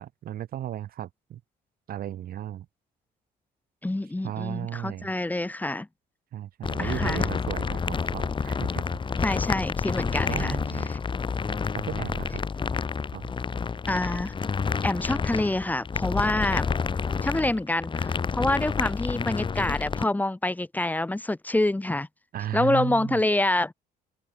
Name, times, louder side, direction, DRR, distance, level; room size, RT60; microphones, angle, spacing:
voice 1, 0.0-1.4 1.9-2.7 4.2-5.1 6.3-9.0 10.3-10.9 11.7-12.4 13.1-13.3 22.3-23.2, right 11 dB, 60° right, 3.9 m, -35 dB
voice 2, 3.8-5.9 6.8-7.3 9.2-10.6 10.8-11.0 13.9-14.3 14.8-16.7 17.2-22.1 22.5-23.7, left 2 dB, 10° left, 3.9 m, -27 dB
sound 1, 6.6-20.0, left 5 dB, 30° left, 2.5 m, -29 dB
open air
cardioid pair, 110°, 17 cm